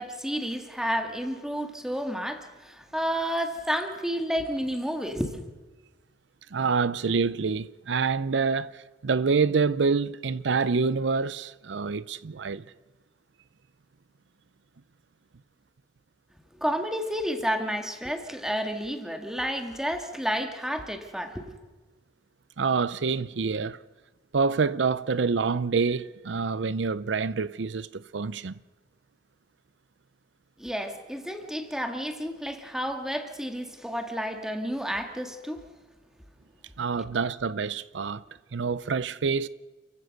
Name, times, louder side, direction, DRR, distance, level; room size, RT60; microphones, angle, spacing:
voice 1, 0.0-5.4 16.6-21.5 30.6-35.6, equal, 5° right, 2.0 m, -31 dB
voice 2, 6.5-12.6 22.6-23.8 24.3-28.6 36.8-38.2 38.5-39.5, right 5 dB, 80° right, 0.6 m, -27 dB
29.0 x 15.5 x 6.5 m
head